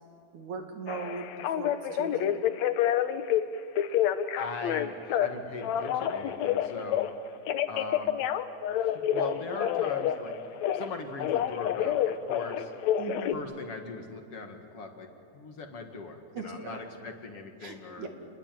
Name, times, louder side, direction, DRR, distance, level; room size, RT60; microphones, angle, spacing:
voice 1, 0.3-2.4 7.5-7.7 13.0-13.4 16.3-16.8 17.6-18.1, right 4 dB, 55° right, 4 dB, 3.4 m, -39 dB
Telephone, 0.9-3.4 3.8-5.3 5.6-7.1 7.5-10.9 11.2-13.3, left 10 dB, 80° left, 1.6 m, -28 dB
voice 2, 4.4-7.1 7.7-8.2 8.8-10.4 10.7-12.7 13.3-15.1 15.3-18.1, left 3 dB, 45° left, 4 dB, 2.2 m, -40 dB
29.5 x 21.5 x 9.1 m, 2.4 s
omnidirectional pair, 4.4 m